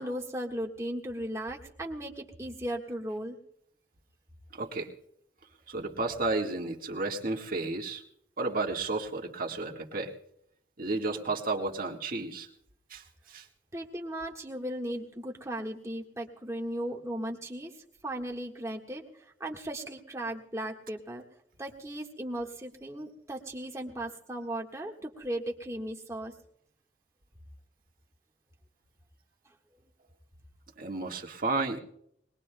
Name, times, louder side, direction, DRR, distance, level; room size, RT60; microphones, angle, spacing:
voice 1, 0.0-3.4 13.7-17.7 18.0-19.0 19.4-21.2 21.6-26.3, right 1 dB, 15° right, 1 dB, 1.5 m, -36 dB
voice 2, 4.5-4.9 5.7-8.0 8.4-10.1 10.8-12.5 12.9-13.0 13.3-13.4 30.8-31.8, right 3 dB, 50° right, 1 dB, 1.6 m, -32 dB
21.5 x 21.0 x 2.2 m, 0.71 s
head